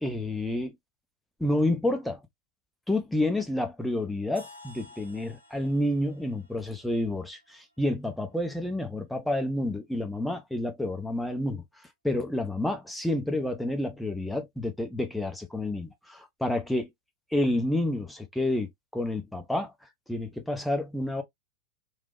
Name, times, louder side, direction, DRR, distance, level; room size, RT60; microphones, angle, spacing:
voice 1, 0.0-0.8 1.4-2.2 2.9-11.6 12.0-16.9 17.3-19.7 20.1-21.2, left 1 dB, 5° left, 0.6 m, -29 dB
sound 1, 4.4-8.3, left 2 dB, 85° left, 0.7 m, -53 dB
3.2 x 2.1 x 2.3 m
figure-of-eight pair, 90°, 0 cm